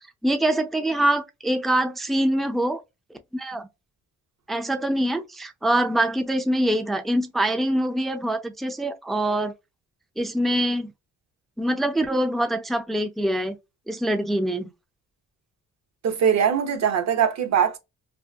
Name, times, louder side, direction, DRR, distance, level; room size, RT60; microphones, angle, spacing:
voice 1, 0.2-2.8 3.3-3.7 4.5-9.5 10.2-10.9 11.6-13.5 13.9-14.7, right 1 dB, ahead, 0.3 m, -24 dB
voice 2, 16.0-17.8, right 8 dB, 60° right, 0.7 m, -21 dB
2.7 x 2.3 x 2.2 m
cardioid pair, 90°, 30 cm